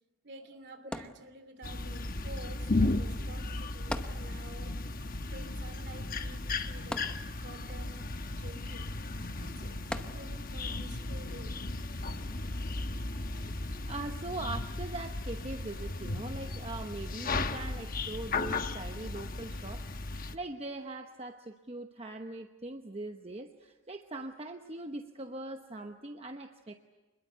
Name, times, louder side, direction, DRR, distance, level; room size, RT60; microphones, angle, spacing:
voice 1, 0.2-4.8 5.3-7.1 7.4-8.9 9.4-11.6, right 2 dB, 55° right, 2.8 m, -50 dB
sound 1, 0.9-1.8 3.9-4.8 5.1-5.2 6.9-7.7 9.9-10.6 11.3-11.4, left 1 dB, 5° left, 0.9 m, -40 dB
sound 2, 1.6-20.4, left 2 dB, 45° left, 1.0 m, -35 dB
sound 3, 9.8-11.4 11.7-13.9 15.6-17.0, equal, 20° left, 6.5 m, -61 dB
voice 2, 13.1-13.5 13.9-19.9 20.3-26.8, right 2 dB, 30° right, 0.9 m, -41 dB
26.5 x 21.5 x 8.1 m
head